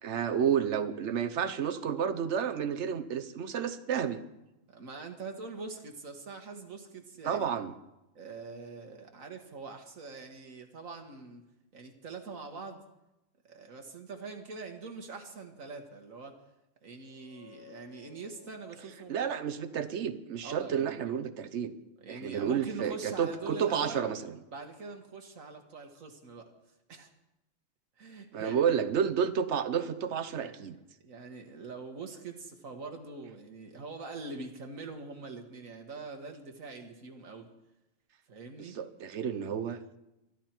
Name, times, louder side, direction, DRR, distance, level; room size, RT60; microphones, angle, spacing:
voice 1, 0.0-4.2 7.2-7.7 19.1-21.7 22.1-24.3 28.3-30.8 38.8-40.0, right 8 dB, 60° right, 10 dB, 1.2 m, -31 dB
voice 2, 4.7-7.5 8.2-11.4 11.7-12.8 13.4-16.4 16.8-19.3 20.4-21.2 22.0-24.0 24.5-26.5 26.9-27.1 28.0-28.8 30.3-30.6 31.0-37.5 38.3-38.8, right 4 dB, 80° right, 4 dB, 1.9 m, -44 dB
sound 1, 17.0-20.6, left 9 dB, 45° left, 4.9 m, -59 dB
23.5 x 11.5 x 4.5 m, 0.94 s
omnidirectional pair, 1.4 m